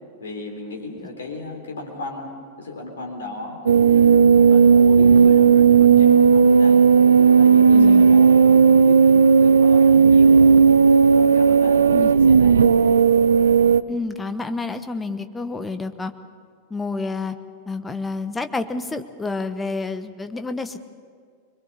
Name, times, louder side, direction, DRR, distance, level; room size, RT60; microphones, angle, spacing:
voice 1, 0.2-2.3 2.6-6.9 7.3-10.4 11.1-12.6, left 2 dB, 65° left, 2 dB, 3.8 m, -36 dB
sound 1, 3.7-13.8, right 6 dB, 70° right, 0.5 m, -14 dB
voice 2, 7.7-8.1 11.9-12.1 13.9-16.1 16.7-17.4 17.7-20.8, left 3 dB, 10° left, 9 dB, 1.1 m, -29 dB
23.5 x 22.0 x 6.9 m, 2.1 s
figure-of-eight pair, 90°, 0 cm